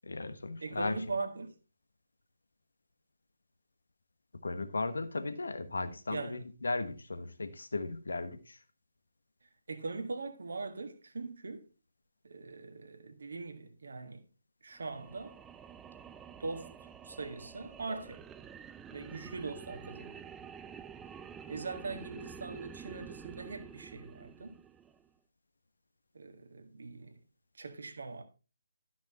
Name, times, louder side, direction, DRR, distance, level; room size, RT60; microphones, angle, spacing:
voice 1, 0.1-1.0 4.4-8.6, left 3 dB, 60° left, 1.3 m, -36 dB
voice 2, 0.6-1.5 6.1-6.4 9.7-11.7 12.2-14.2 14.6-15.4 16.4-16.7 17.0-18.2 18.9-20.2 21.5-24.6 26.1-27.1 27.6-28.2, right 3 dB, 55° right, 1.7 m, -41 dB
sound 1, 14.7-25.1, right 7 dB, 10° right, 0.4 m, -49 dB
12.5 x 6.2 x 4.2 m
figure-of-eight pair, 145°, 0 cm